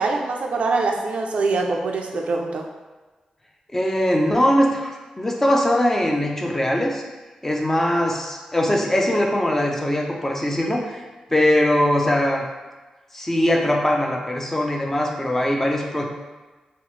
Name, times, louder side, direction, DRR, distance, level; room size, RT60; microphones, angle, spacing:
voice 1, 0.0-2.7, right 3 dB, 65° right, 2 dB, 0.3 m, -23 dB
voice 2, 3.7-7.0 7.4-11.0 11.3-12.5 13.1-16.0, left 1 dB, 15° left, 0 dB, 0.4 m, -21 dB
2.9 x 2.0 x 3.0 m, 1.2 s
cardioid pair, 70°, 2 cm